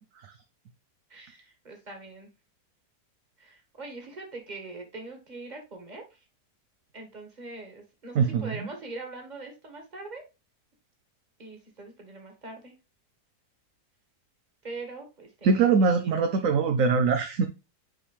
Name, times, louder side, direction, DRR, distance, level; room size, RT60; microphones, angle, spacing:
voice 1, 1.1-2.3 3.4-6.2 6.9-10.3 11.4-12.8 14.6-16.5, right 3 dB, 25° right, 1.8 m, -42 dB
voice 2, 8.1-8.5 15.4-17.5, right 5 dB, 60° right, 1.0 m, -22 dB
6.2 x 4.8 x 3.2 m
omnidirectional pair, 1.7 m